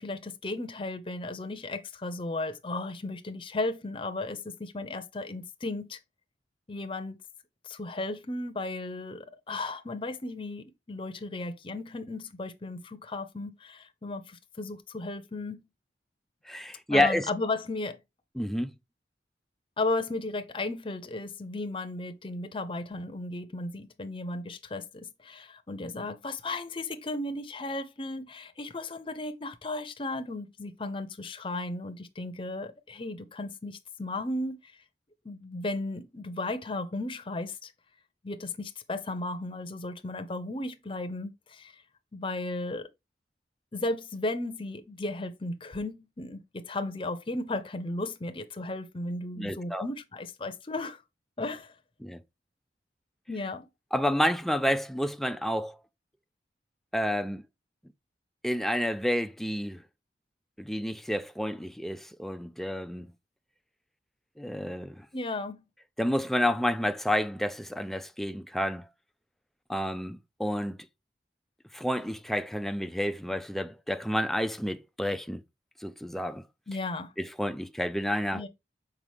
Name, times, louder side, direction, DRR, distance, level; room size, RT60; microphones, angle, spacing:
voice 1, 0.0-6.0 6.7-7.2 7.6-15.6 16.9-18.0 19.8-34.7 35.2-37.7 38.2-41.8 42.1-42.9 43.7-51.0 51.4-51.7 53.3-53.7 65.1-65.6 76.7-77.1 78.3-78.5, left 2 dB, 30° left, 0.7 m, -35 dB
voice 2, 16.5-17.3 18.4-18.7 49.4-49.9 52.0-52.2 53.9-55.8 56.9-57.5 58.4-59.8 60.6-63.1 64.4-65.1 66.0-68.9 69.7-70.8 71.7-75.4 75.8-76.4 77.2-78.4, equal, ahead, 0.4 m, -29 dB
6.3 x 4.9 x 3.5 m
head